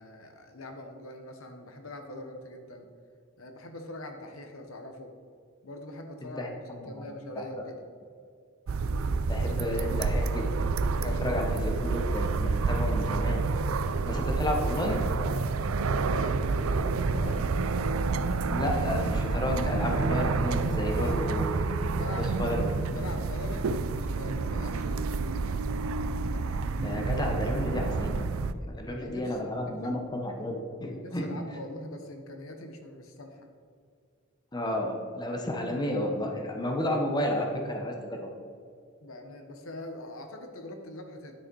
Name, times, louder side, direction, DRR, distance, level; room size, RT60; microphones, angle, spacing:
voice 1, 0.0-2.9 3.4-5.1 5.6-7.8 10.9-11.4 13.8-14.1 15.8-17.5 20.9-21.2 21.9-22.6 22.9-25.4 28.6-30.0 30.4-30.5 30.9-33.5 39.0-41.4, left 1 dB, 70° left, 5 dB, 1.1 m, -43 dB
sound 1, 8.7-28.5, right 4 dB, 75° right, 0.4 m, -29 dB
voice 2, 9.3-10.5 11.0-13.5 14.1-15.0 18.4-21.7 22.2-22.7 26.8-28.3 28.7-31.2 34.5-38.3, left 1 dB, 20° left, 2 dB, 1.0 m, -31 dB
10.0 x 6.5 x 4.6 m, 2.3 s
head